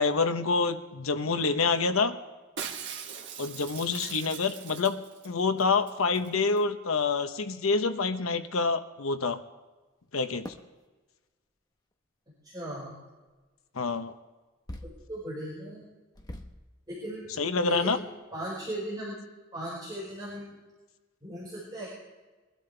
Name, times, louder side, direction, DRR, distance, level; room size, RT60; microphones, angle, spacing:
voice 1, 0.0-2.1 3.4-5.0 5.2-9.4 10.1-10.5 13.7-14.1 17.4-18.0, left 4 dB, 90° left, 9 dB, 1.0 m, -27 dB
Shatter, 2.6-5.3 5.6-5.7 5.9-6.3 6.6-6.7, right 7 dB, 60° right, 1.5 m, -40 dB
voice 2, 3.8-4.2 12.4-13.0 14.8-15.8 16.9-17.3 17.6-18.0 18.3-19.1 19.5-20.5 21.2-21.9, equal, 20° right, -8 dB, 5.3 m, -37 dB
sound 1, 10.4-10.7 11.9-12.0 13.3-13.5 14.7-15.2 15.5-15.6 16.1-16.7 17.3-17.4 17.7-17.8 18.1-18.4, left 1 dB, 20° left, 1.0 m, -43 dB
23.0 x 12.5 x 3.4 m, 1.2 s
head